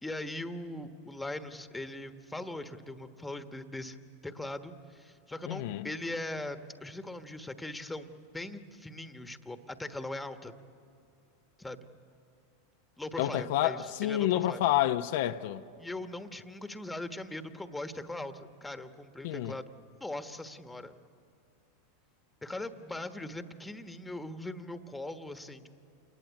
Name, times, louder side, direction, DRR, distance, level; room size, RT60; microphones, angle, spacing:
voice 1, 0.0-10.5 11.6-11.8 13.0-14.6 15.8-19.7 20.0-21.0 22.4-25.7, left 1 dB, 10° left, 1.4 m, -40 dB
voice 2, 5.5-5.9 13.2-15.6 19.2-19.5, left 13 dB, 65° left, 0.7 m, -29 dB
27.5 x 20.5 x 8.4 m
hypercardioid pair, 100°, 0 cm